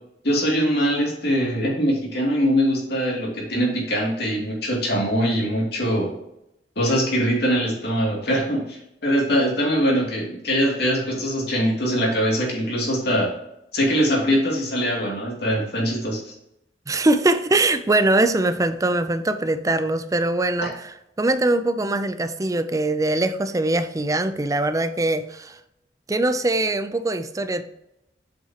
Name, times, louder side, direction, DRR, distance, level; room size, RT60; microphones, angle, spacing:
voice 1, 0.2-6.1 6.8-13.3 13.7-16.2, equal, 65° left, -3 dB, 2.6 m, -22 dB
voice 2, 16.9-20.7 21.2-25.6 26.1-27.6, right 2 dB, 20° right, 10 dB, 0.5 m, -22 dB
7.7 x 5.6 x 2.9 m, 0.83 s
head